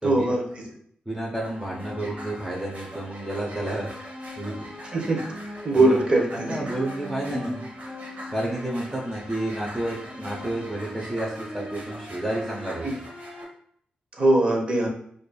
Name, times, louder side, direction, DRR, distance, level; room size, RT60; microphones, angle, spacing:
voice 1, 0.0-0.4 4.9-5.2 5.6-6.7 7.3-7.5 12.8-12.9 14.2-14.9, right 2 dB, 35° right, -1 dB, 0.9 m, -21 dB
voice 2, 1.1-3.9 4.4-4.7 5.7-6.0 6.5-7.6 8.3-12.9, right 1 dB, 5° right, -4 dB, 0.7 m, -30 dB
sound 1, 1.4-13.4, equal, 55° right, 1.1 m, -40 dB
5.0 x 2.5 x 2.3 m, 0.66 s
cardioid pair, 105°, 3 cm